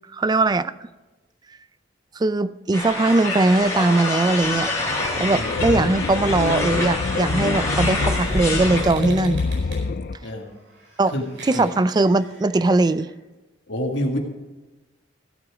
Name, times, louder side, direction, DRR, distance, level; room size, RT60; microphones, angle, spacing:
voice 1, 0.1-0.7 2.2-4.7 5.2-9.4 11.0-11.1 11.4-13.1, right 2 dB, 20° right, 15 dB, 0.3 m, -20 dB
sound 1, 2.7-8.8, left 2 dB, 15° left, 3.9 m, -26 dB
sound 2, 4.4-10.2, left 4 dB, 50° left, 0.4 m, -27 dB
voice 2, 5.3-5.8 10.2-10.5 11.1-11.2 11.5-11.7 13.7-14.2, left 1 dB, 75° left, 2 dB, 2.0 m, -27 dB
sound 3, 7.5-13.1, right 2 dB, 80° right, 4.6 m, -44 dB
16.0 x 8.4 x 5.0 m, 1.2 s
head